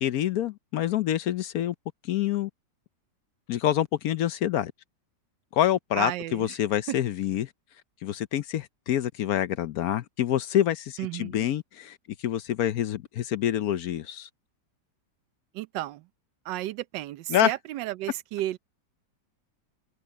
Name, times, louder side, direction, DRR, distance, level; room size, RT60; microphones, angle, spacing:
voice 1, 0.0-1.7 2.0-2.5 3.5-4.7 5.5-7.5 8.0-12.0 12.2-14.3 17.3-17.5, left 11 dB, 65° left, 1.0 m, -26 dB
voice 2, 5.9-6.5 6.9-7.0 11.0-11.5 15.5-16.0 16.4-18.6, right 15 dB, 85° right, 1.3 m, -33 dB
open air
omnidirectional pair, 1.9 m